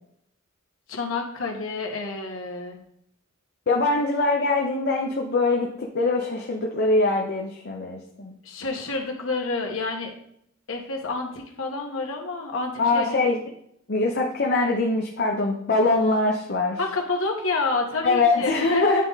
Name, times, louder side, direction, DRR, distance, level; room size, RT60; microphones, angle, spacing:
voice 1, 0.9-2.8 8.4-10.1 10.7-13.2 16.8-19.0, left 3 dB, 80° left, 1 dB, 1.3 m, -29 dB
voice 2, 3.7-8.3 12.8-13.4 13.9-16.8 18.0-19.0, left 3 dB, 55° left, 0 dB, 0.8 m, -23 dB
9.2 x 3.7 x 4.0 m, 0.71 s
head